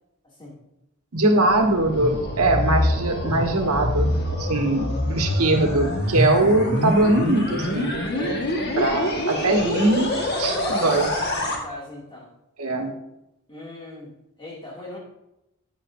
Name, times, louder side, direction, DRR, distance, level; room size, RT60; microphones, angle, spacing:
voice 1, 0.2-0.6 4.6-4.7 10.2-12.3 13.5-15.0, left 1 dB, 20° left, -3 dB, 2.3 m, -38 dB
voice 2, 1.1-8.4 8.8-11.1 12.6-12.9, right 2 dB, 90° right, 3 dB, 1.3 m, -22 dB
sound 1, 1.5-11.6, left 1 dB, 50° left, 1.5 m, -25 dB
10.5 x 8.3 x 2.6 m, 0.89 s
head